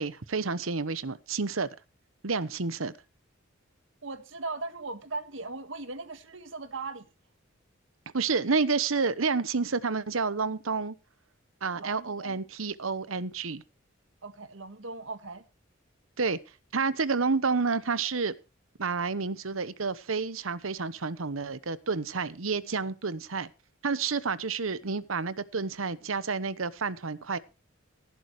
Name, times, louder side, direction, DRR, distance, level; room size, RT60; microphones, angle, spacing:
voice 1, 0.0-1.7 2.2-2.9 8.1-10.9 11.6-13.6 16.2-16.4 16.7-18.3 18.8-23.5 23.8-27.4, right 4 dB, 85° right, 1.0 m, -29 dB
voice 2, 4.0-7.1 11.7-12.4 14.2-15.5, right 3 dB, 65° right, 1.6 m, -38 dB
18.0 x 11.0 x 3.2 m
head